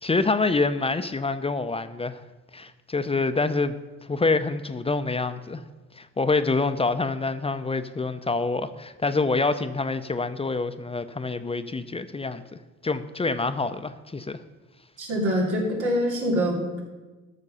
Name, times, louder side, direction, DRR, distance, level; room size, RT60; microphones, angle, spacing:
voice 1, 0.0-2.2 2.5-3.8 4.0-5.6 5.9-12.4 12.8-14.4, left 3 dB, 20° left, 11 dB, 0.5 m, -26 dB
voice 2, 15.0-16.8, equal, 90° right, -1 dB, 2.9 m, -25 dB
13.0 x 6.6 x 5.5 m, 1.2 s
cardioid pair, 90°, 30 cm